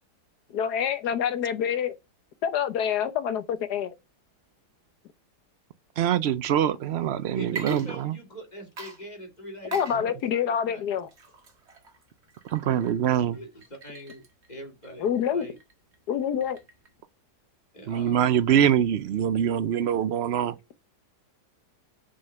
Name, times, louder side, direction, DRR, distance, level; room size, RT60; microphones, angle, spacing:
voice 1, 0.5-1.9 2.4-3.9 9.7-11.1 15.0-15.4 16.1-16.6, left 8 dB, 70° left, 1.5 m, -26 dB
voice 2, 6.0-8.1 12.5-13.4 17.9-20.5, right 9 dB, 75° right, 0.6 m, -24 dB
voice 3, 7.3-10.8 13.3-14.2 14.5-15.6 17.7-18.2, equal, 25° left, 2.7 m, -42 dB
Water / Liquid, 7.5-8.4 8.8-17.0, right 4 dB, 40° right, 1.9 m, -44 dB
6.4 x 5.5 x 5.7 m
omnidirectional pair, 1.8 m